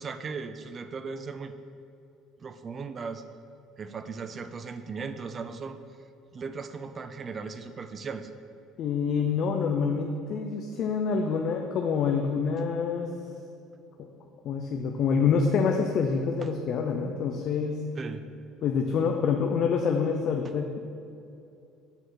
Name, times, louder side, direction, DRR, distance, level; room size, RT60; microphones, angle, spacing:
voice 1, 0.0-1.5 2.4-3.2 3.8-5.8 6.3-8.3 10.3-10.4 17.9-18.2 20.4-20.5, right 5 dB, 30° right, 10 dB, 0.4 m, -37 dB
voice 2, 8.8-13.1 14.4-17.8 18.6-20.8, left 5 dB, 50° left, 3 dB, 0.4 m, -26 dB
6.8 x 4.2 x 4.5 m, 2.6 s
cardioid pair, 120°, 0 cm